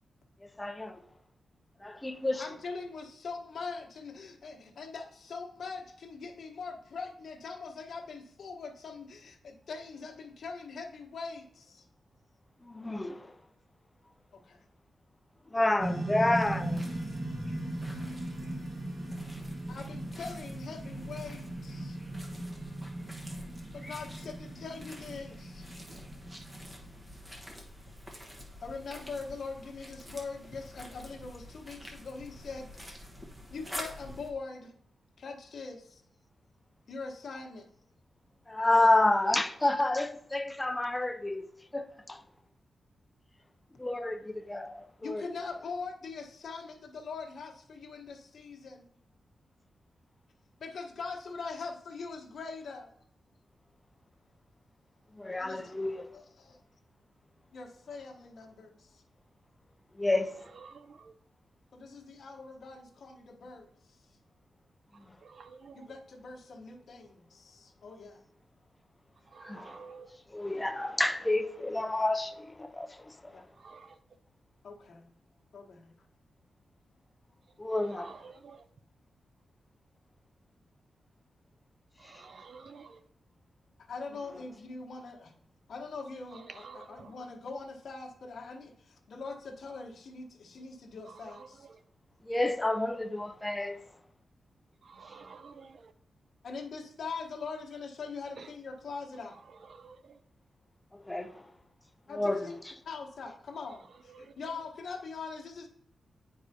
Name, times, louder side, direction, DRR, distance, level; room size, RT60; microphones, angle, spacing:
voice 1, 0.6-1.0 1.8-2.5 12.6-13.3 15.5-16.8 23.8-23.9 38.5-41.4 41.7-42.2 43.8-45.2 55.2-56.1 60.0-60.3 69.4-69.8 70.3-72.9 77.6-78.1 92.3-93.8 101.1-101.3 102.1-102.6, left 2 dB, 15° left, 0.5 m, -29 dB
voice 2, 2.3-11.9 14.3-14.6 19.7-22.0 23.7-25.7 28.6-32.7 33.5-34.7 35.2-36.0 36.9-37.7 45.0-48.8 50.6-52.9 55.4-56.6 57.5-59.0 61.7-64.0 65.7-68.2 73.3-73.4 74.6-75.1 75.5-75.9 83.9-85.3 85.7-91.7 96.4-99.4 102.1-102.5 102.8-105.7, left 4 dB, 60° left, 1.1 m, -42 dB
sound 1, 15.8-27.2, right 1 dB, 35° right, 1.4 m, -38 dB
sound 2, 16.3-34.3, equal, 15° right, 1.1 m, -48 dB
voice 3, 60.5-61.1 65.2-65.9 69.3-70.2 73.6-74.0 77.7-78.6 82.0-83.0 86.3-87.2 91.1-91.8 94.8-95.9 98.4-98.5 99.5-100.2 104.1-104.3, right 5 dB, 55° right, 0.4 m, -51 dB
9.7 x 4.7 x 2.7 m
wide cardioid pair, 145°, 0 cm